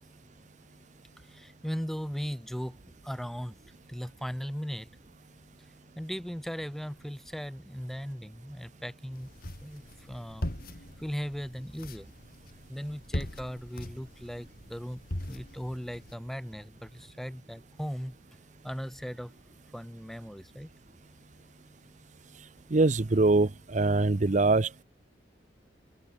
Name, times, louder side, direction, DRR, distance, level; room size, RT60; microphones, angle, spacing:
voice 1, 1.2-2.8 3.0-3.6 3.9-4.9 6.0-9.3 9.6-10.5 11.0-12.1 12.7-15.0 15.3-18.2 18.6-19.3 19.7-20.7, equal, ahead, 0.7 m, -38 dB
sound 1, 9.1-16.1, left 1 dB, 50° left, 2.7 m, -40 dB
voice 2, 22.7-24.8, right 3 dB, 40° right, 0.7 m, -23 dB
head